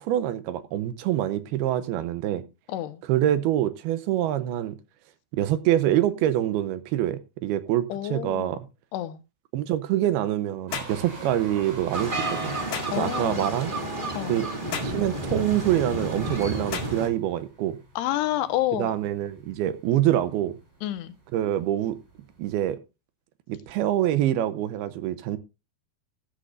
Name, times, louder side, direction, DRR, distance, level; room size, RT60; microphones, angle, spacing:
voice 1, 0.0-2.4 3.1-4.8 5.3-8.6 9.5-12.6 12.9-13.7 14.3-14.5 14.8-17.8 18.7-20.5 21.3-22.0 22.4-22.8 23.5-25.4, right 12 dB, 75° right, 2.5 m, -25 dB
voice 2, 2.7-3.0 7.9-8.5 8.9-9.2 12.9-13.5 14.2-14.4 18.0-18.9 20.8-21.1, left 13 dB, 75° left, 3.0 m, -29 dB
sound 1, 10.7-11.0 12.7-13.0 14.7-15.0 16.7-17.0, left 7 dB, 60° left, 3.5 m, -33 dB
sound 2, 10.7-22.7, right 3 dB, 55° right, 8.3 m, -46 dB
sound 3, 11.9-17.1, right 2 dB, 20° right, 1.4 m, -31 dB
15.0 x 13.0 x 2.5 m
omnidirectional pair, 5.0 m